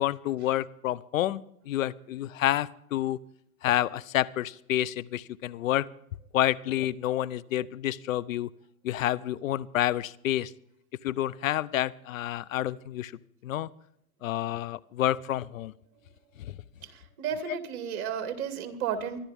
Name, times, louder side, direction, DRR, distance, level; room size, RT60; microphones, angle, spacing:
voice 1, 0.0-3.2 3.6-5.9 6.3-8.5 8.8-10.5 11.0-13.1 13.4-13.7 14.2-15.7 16.5-16.6 17.5-17.6, left 13 dB, 70° left, 19 dB, 0.8 m, -29 dB
voice 2, 16.8-19.2, right 8 dB, 50° right, 7 dB, 2.4 m, -33 dB
24.0 x 12.0 x 3.6 m, 0.73 s
hypercardioid pair, 135°, 42 cm